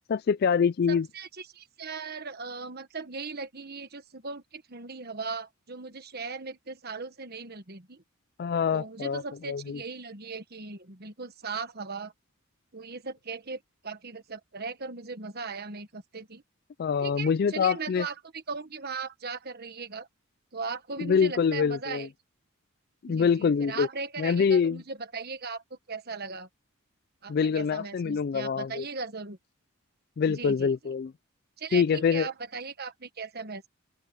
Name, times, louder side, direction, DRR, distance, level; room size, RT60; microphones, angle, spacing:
voice 1, 0.1-1.1 8.4-9.8 16.8-18.1 21.0-22.1 23.0-23.9 24.2-24.8 27.3-28.8 30.2-31.1 31.7-32.3, left 6 dB, 45° left, 0.3 m, -25 dB
voice 2, 0.9-8.0 8.7-12.1 12.7-16.4 17.0-20.1 20.5-22.1 23.0-26.5 27.2-29.4 30.3-30.9 31.6-33.7, right 4 dB, 45° right, 1.4 m, -38 dB
open air
head